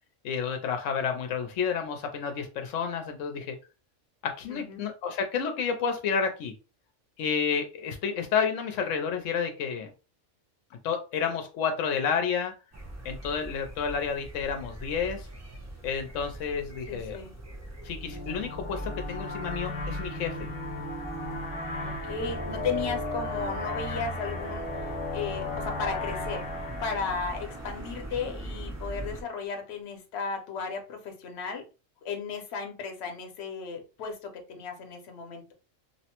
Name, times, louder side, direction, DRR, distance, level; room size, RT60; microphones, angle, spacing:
voice 1, 0.2-3.6 4.2-6.5 7.2-9.9 10.8-12.5 13.0-15.3 15.8-17.2 17.8-20.5, left 6 dB, 90° left, 5 dB, 0.9 m, -30 dB
voice 2, 4.5-4.8 16.9-17.3 21.8-26.5 26.8-31.6 32.0-35.5, left 5 dB, 65° left, 5 dB, 1.0 m, -35 dB
sound 1, 12.7-29.2, right 1 dB, 25° right, 0.3 m, -41 dB
sound 2, 18.0-28.4, left 2 dB, 30° left, 0.7 m, -35 dB
2.9 x 2.0 x 2.9 m, 0.31 s
omnidirectional pair, 1.3 m